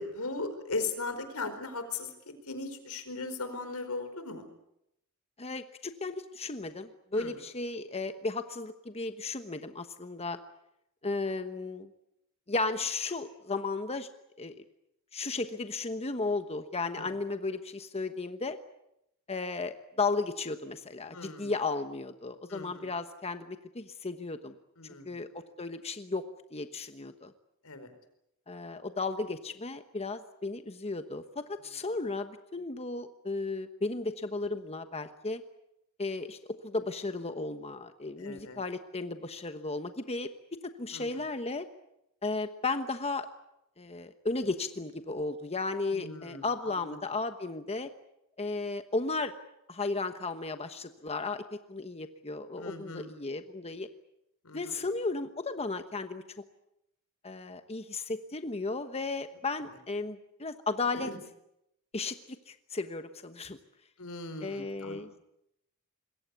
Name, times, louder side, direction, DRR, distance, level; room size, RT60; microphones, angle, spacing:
voice 1, 0.0-2.1 2.4-4.5 7.1-7.4 16.9-17.1 21.1-21.5 22.5-22.9 24.8-25.2 27.6-27.9 38.2-38.6 40.9-41.3 45.9-47.0 52.6-53.1 54.4-54.8 60.9-61.2 64.0-65.0, left 3 dB, 85° left, 9 dB, 4.7 m, -38 dB
voice 2, 5.4-10.4 11.0-11.9 12.5-14.1 14.4-14.5 15.1-18.6 19.3-24.6 25.0-27.3 28.5-35.4 36.0-40.3 40.6-41.6 42.2-43.3 43.8-47.9 48.4-49.3 49.7-53.9 54.5-56.2 57.2-61.1 61.9-62.2 62.5-63.6 64.4-65.1, left 3 dB, 30° left, 8 dB, 1.1 m, -34 dB
26.0 x 22.0 x 8.3 m, 0.81 s
head